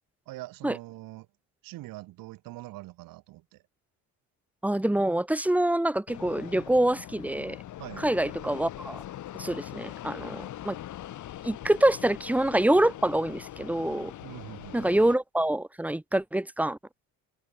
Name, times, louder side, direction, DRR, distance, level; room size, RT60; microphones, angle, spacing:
voice 1, 0.3-1.3 1.6-3.6 7.8-8.1 14.2-14.9, right 18 dB, 90° right, 7.3 m, -43 dB
voice 2, 4.6-7.6 8.0-9.0 9.4-10.8 11.4-14.1 14.7-16.8, right 1 dB, 5° right, 1.5 m, -26 dB
Fixed-wing aircraft airplane, 6.1-15.1, left 12 dB, 60° left, 2.1 m, -42 dB
cardioid pair, 115°, 33 cm